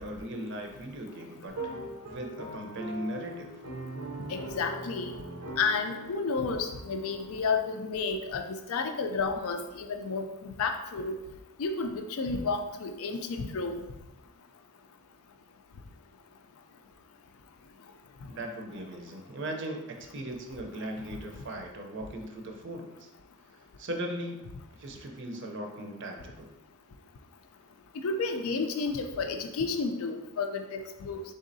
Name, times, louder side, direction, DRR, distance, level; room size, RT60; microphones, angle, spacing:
voice 1, 0.0-1.5 2.1-3.5 18.3-23.1 23.8-26.5, right 1 dB, 55° right, 3 dB, 0.6 m, -38 dB
sound 1, 1.5-7.4, right 2 dB, 90° right, 0.7 m, -41 dB
voice 2, 4.3-5.1 5.6-11.2 11.6-13.8 28.0-31.2, left 4 dB, 70° left, 6 dB, 0.4 m, -31 dB
4.0 x 3.6 x 2.6 m, 0.99 s
head